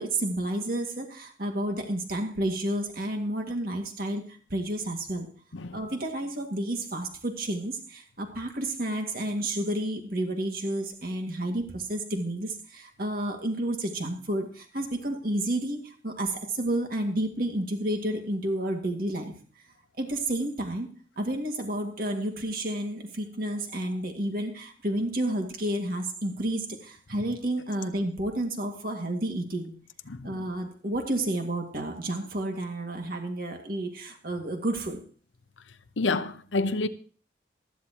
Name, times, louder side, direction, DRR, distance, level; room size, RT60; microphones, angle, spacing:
voice 1, 0.0-4.2 4.5-5.3 5.7-19.3 20.0-20.9 21.2-29.7 30.2-35.0, right 1 dB, 50° right, 2.1 m, -30 dB
voice 2, 36.0-36.9, left 3 dB, 90° left, 0.8 m, -28 dB
15.0 x 13.5 x 3.0 m
head